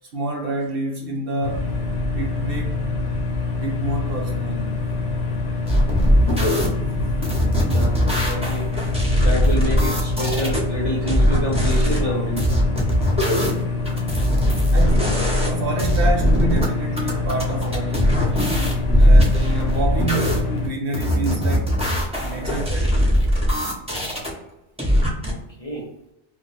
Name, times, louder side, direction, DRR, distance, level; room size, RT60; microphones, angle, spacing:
voice 1, 0.1-1.7 2.1-2.8 3.6-4.9 6.0-6.5 7.0-7.1 14.7-18.3 18.9-21.7 22.2-23.1, right 2 dB, 60° right, 0.8 m, -28 dB
sound 1, 1.4-20.7, left 3 dB, 70° left, 0.8 m, -25 dB
sound 2, 5.7-6.7 7.2-10.6 11.1-12.0 12.4-15.5 15.8-16.6 17.0-20.4 20.9-24.3 24.8-25.3, equal, 10° right, 0.4 m, -20 dB
voice 2, 7.6-8.7 9.2-12.5 18.8-19.1 25.2-25.9, equal, 35° left, 0.7 m, -28 dB
2.3 x 2.2 x 4.0 m
omnidirectional pair, 1.2 m